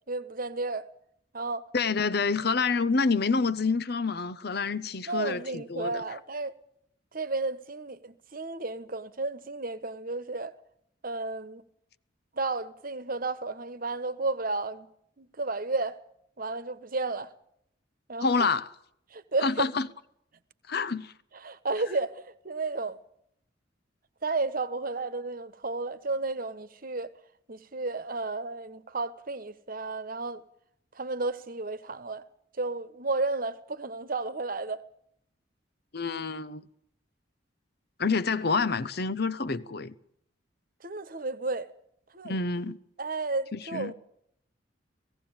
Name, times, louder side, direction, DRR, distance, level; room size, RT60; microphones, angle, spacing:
voice 1, 0.1-0.8 1.3-1.7 5.1-6.5 7.1-10.5 11.0-11.6 12.3-14.9 15.2-16.0 16.4-17.3 18.1-18.5 19.1-19.7 21.4-23.0 24.2-27.1 27.5-30.4 30.9-32.2 32.6-34.8 40.8-41.7 42.1-42.3 43.0-43.9, right 3 dB, 50° right, 1.3 m, -32 dB
voice 2, 1.7-5.9 18.2-18.7 19.4-19.9 20.7-21.1 35.9-36.6 38.0-39.9 42.2-42.8 43.5-43.9, left 4 dB, 55° left, 1.0 m, -27 dB
17.5 x 17.0 x 8.9 m
head